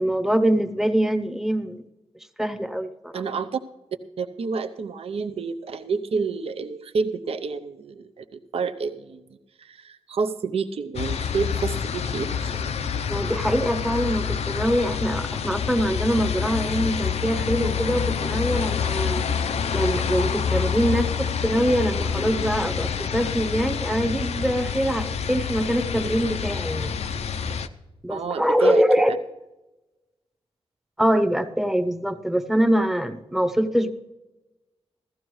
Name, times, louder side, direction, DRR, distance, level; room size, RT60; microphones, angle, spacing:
voice 1, 0.0-1.8 2.4-3.2 13.1-19.2 19.7-26.9 28.0-29.1 31.0-33.9, equal, 5° right, 10 dB, 0.8 m, -24 dB
voice 2, 3.1-3.6 4.2-8.2 8.5-9.2 9.6-12.7 28.1-29.2, right 5 dB, 65° right, 8 dB, 0.6 m, -29 dB
sound 1, 10.9-27.7, left 7 dB, 90° left, 0.6 m, -27 dB
16.0 x 14.0 x 3.1 m, 1.0 s
wide cardioid pair, 115°, 11 cm